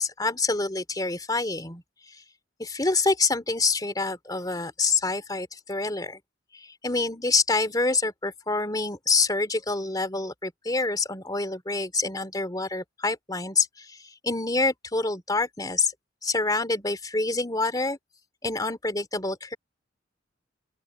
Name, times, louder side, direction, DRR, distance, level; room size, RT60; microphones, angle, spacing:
voice 1, 0.0-1.8 2.6-6.2 6.5-14.0 14.2-15.9 16.2-18.0 18.4-19.6, left 3 dB, 20° left, 3.2 m, -26 dB
open air
head